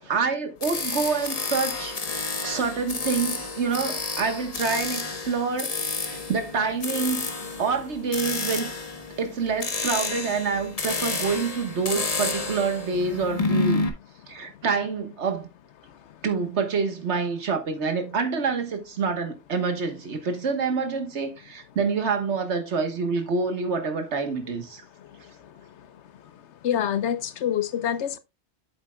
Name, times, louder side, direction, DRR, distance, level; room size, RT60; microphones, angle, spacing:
voice 1, 0.0-2.0 2.4-5.7 6.0-7.3 7.6-8.7 9.2-13.9 14.3-15.5 16.2-24.8, right 5 dB, 75° right, 1.6 m, -27 dB
sound 1, 0.6-13.9, left 3 dB, 35° left, 1.0 m, -30 dB
voice 2, 26.6-28.2, left 9 dB, 80° left, 1.0 m, -26 dB
8.2 x 8.0 x 2.2 m
omnidirectional pair, 1.2 m